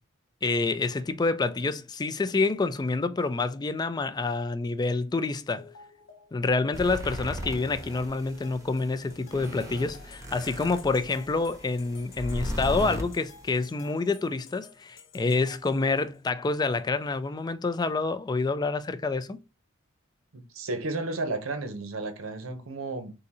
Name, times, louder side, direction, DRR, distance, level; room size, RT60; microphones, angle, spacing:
voice 1, 0.4-5.7 6.3-19.4, left 3 dB, 20° left, 0.3 m, -27 dB
sound 1, 5.6-16.2, left 6 dB, 65° left, 0.9 m, -54 dB
sound 2, 6.7-13.6, equal, 15° right, 0.8 m, -37 dB
voice 2, 20.3-23.1, right 2 dB, 85° right, 0.8 m, -33 dB
3.8 x 2.6 x 4.1 m
head